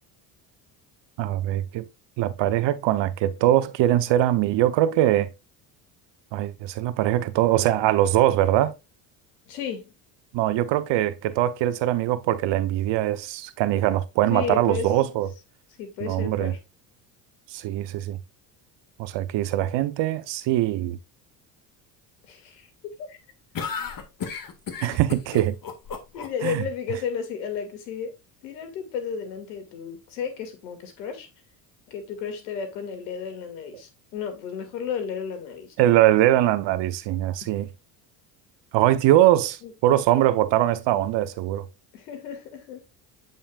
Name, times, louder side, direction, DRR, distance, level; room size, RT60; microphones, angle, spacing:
voice 1, 1.2-1.9 2.2-5.3 6.3-8.7 10.3-15.3 16.0-16.5 17.5-18.2 19.0-21.0 24.8-25.5 26.4-26.6 35.8-37.7 38.7-41.6, right 13 dB, 60° right, 0.8 m, -22 dB
voice 2, 9.5-9.9 14.3-15.2 15.8-16.6 22.3-23.2 26.1-28.1 28.4-31.3 31.9-35.9 39.6-39.7 41.9-42.8, left 7 dB, 90° left, 2.3 m, -33 dB
sound 1, 23.5-26.5, left 6 dB, 45° left, 1.9 m, -33 dB
8.7 x 5.5 x 2.4 m
supercardioid pair, 80°, 49 cm